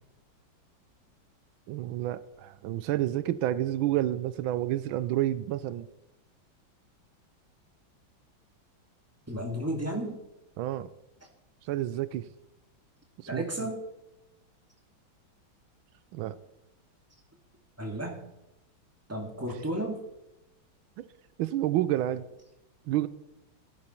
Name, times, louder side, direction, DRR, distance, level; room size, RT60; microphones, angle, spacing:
voice 1, 1.7-5.9 10.6-10.9 11.7-12.3 13.2-13.7 16.1-16.4 21.0-21.1 21.4-22.2 22.9-23.1, right 13 dB, 85° right, 16 dB, 1.4 m, -29 dB
voice 2, 9.3-10.2 13.3-13.8 17.8-18.2 19.1-20.0, right 1 dB, 5° right, 1 dB, 2.3 m, -33 dB
15.0 x 11.0 x 4.5 m, 0.90 s
omnidirectional pair, 2.2 m